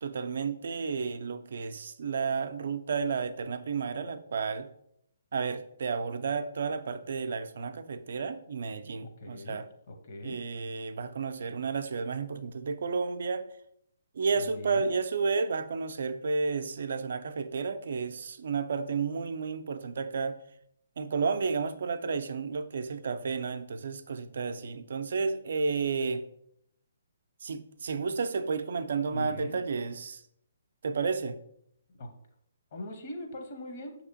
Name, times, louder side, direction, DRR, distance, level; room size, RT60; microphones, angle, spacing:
voice 1, 0.0-4.7 5.3-9.7 10.2-13.4 14.1-20.4 21.0-26.2 27.4-30.2 30.8-31.4, right 5 dB, 60° right, 10 dB, 0.3 m, -32 dB
voice 2, 9.0-9.6 9.9-10.4 14.4-14.9 29.1-29.6 32.0-32.1 32.7-33.9, left 1 dB, 50° left, 3 dB, 0.8 m, -41 dB
6.0 x 2.8 x 2.7 m, 0.73 s
figure-of-eight pair, 135°, 0 cm